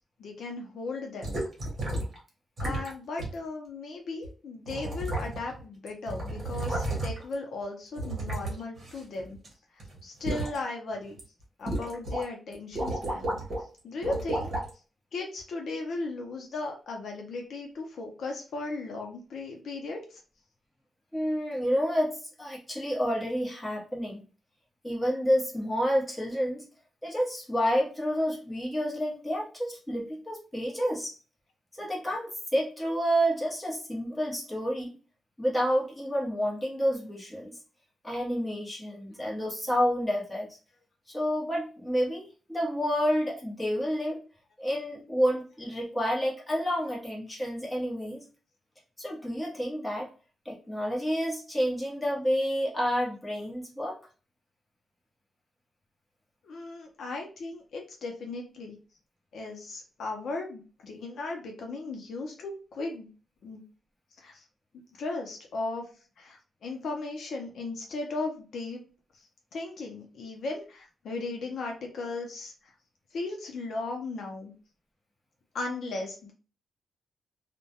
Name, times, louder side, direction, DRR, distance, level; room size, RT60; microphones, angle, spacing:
voice 1, 0.2-1.4 2.6-9.4 10.0-11.2 11.6-13.4 13.8-14.5 15.1-20.2 56.4-58.8 59.3-63.1 63.4-63.6 64.2-64.4 65.0-65.8 66.2-68.8 69.5-72.5 73.1-74.5 75.5-76.3, left 3 dB, 65° left, 2 dB, 0.5 m, -36 dB
sound 1, 1.2-2.2 2.6-2.9 3.2-3.3 4.2-4.3 4.7-5.6 5.9-7.3 8.0-9.5 9.8-10.6 11.0-11.2 11.7-12.2 12.5-13.6 14.0-14.7 15.4-15.5, right 1 dB, 40° right, 0.9 m, -32 dB
voice 2, 21.1-24.2 24.8-26.6 27.0-31.2 31.8-35.0 35.4-37.6 38.0-40.6 41.1-44.2 44.6-48.2 49.0-50.1 50.4-54.0, equal, 10° left, -4 dB, 0.8 m, -29 dB
2.2 x 2.1 x 2.7 m, 0.36 s
wide cardioid pair, 155°, 0 cm